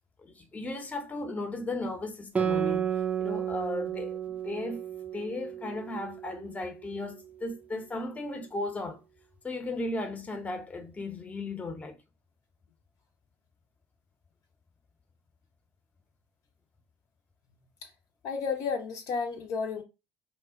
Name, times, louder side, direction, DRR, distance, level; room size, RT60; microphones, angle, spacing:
voice 1, 0.2-2.9 3.2-4.2 4.4-4.8 5.1-9.0 9.4-12.0, left 2 dB, 20° left, 0.7 m, -36 dB
Guitar, 2.4-7.3, right 8 dB, 20° right, 0.5 m, -32 dB
voice 2, 18.2-19.8, left 5 dB, 60° left, 0.6 m, -32 dB
2.2 x 2.1 x 3.5 m
hypercardioid pair, 70°, 6 cm